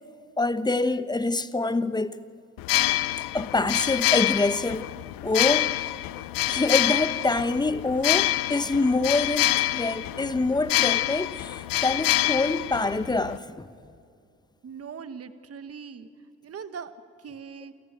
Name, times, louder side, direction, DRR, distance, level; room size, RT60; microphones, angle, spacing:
voice 1, 0.4-2.2 3.3-4.9 5.2-5.7 6.5-13.7, left 3 dB, 10° left, 0.9 m, -25 dB
sound 1, 2.6-13.4, left 16 dB, 80° left, 0.6 m, -26 dB
voice 2, 14.6-16.1 16.4-16.9 17.2-17.7, right 6 dB, 45° right, 1.4 m, -40 dB
28.5 x 14.0 x 9.4 m
supercardioid pair, 75°, 33 cm